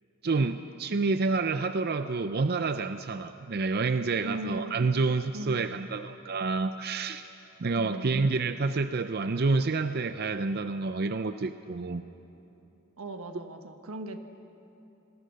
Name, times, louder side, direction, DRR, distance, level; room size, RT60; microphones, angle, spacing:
voice 1, 0.2-7.2 7.6-12.0, right 3 dB, 50° right, 10 dB, 0.5 m, -28 dB
voice 2, 4.2-4.9 5.3-5.8 7.7-8.1 13.0-14.2, right 1 dB, 85° right, 7 dB, 1.5 m, -38 dB
27.0 x 20.5 x 6.5 m, 3.0 s
head